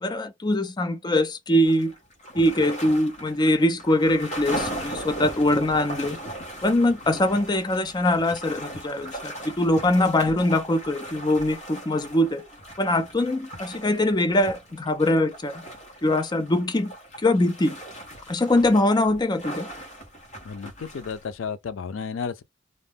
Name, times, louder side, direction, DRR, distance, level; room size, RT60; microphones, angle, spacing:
voice 1, 0.0-2.0 2.4-6.2 6.6-12.4 12.8-15.6 16.0-16.9 17.2-17.8 18.3-19.7, left 1 dB, 20° left, 0.5 m, -22 dB
sound 1, 1.6-21.5, right 1 dB, 40° left, 1.0 m, -38 dB
voice 2, 20.4-22.4, left 6 dB, 90° left, 0.4 m, -32 dB
2.6 x 2.1 x 3.3 m
head